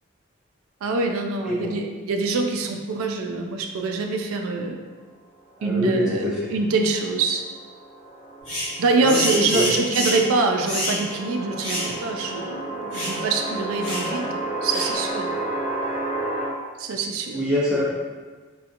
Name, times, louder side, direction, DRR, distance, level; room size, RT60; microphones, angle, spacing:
voice 1, 0.8-4.8 5.6-7.4 8.8-14.3 14.6-15.3 16.8-17.4, right 3 dB, 85° right, 3 dB, 0.3 m, -24 dB
voice 2, 5.6-6.5 9.0-9.2 9.5-9.6 17.3-17.8, left 1 dB, 5° right, -7 dB, 0.5 m, -24 dB
sound 1, 6.3-16.5, right 2 dB, 45° right, 0.8 m, -32 dB
sound 2, 8.5-8.7 9.1-10.3 10.7-11.0 11.6-11.9 12.2-12.3 12.9-13.2 13.8-14.1 14.7-15.0, equal, 25° left, 1.1 m, -27 dB
2.7 x 2.2 x 2.4 m, 1.4 s
head